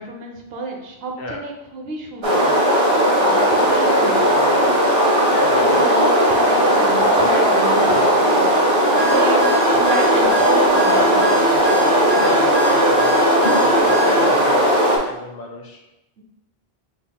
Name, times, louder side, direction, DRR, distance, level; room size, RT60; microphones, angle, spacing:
voice 1, 0.0-5.0 5.5-9.4 9.7-11.8 13.5-14.6 16.2-16.3, right 2 dB, 70° right, 2 dB, 0.9 m, -31 dB
sound 1, 2.2-15.0, equal, 30° right, 0.7 m, -16 dB
voice 2, 5.3-6.1 7.8-8.1 11.8-14.7 15.0-15.8, left 3 dB, 65° left, 2 dB, 0.8 m, -32 dB
sound 2, 8.9-14.2, right 1 dB, 5° left, 1.2 m, -27 dB
5.4 x 2.8 x 2.2 m, 0.90 s
omnidirectional pair, 1.1 m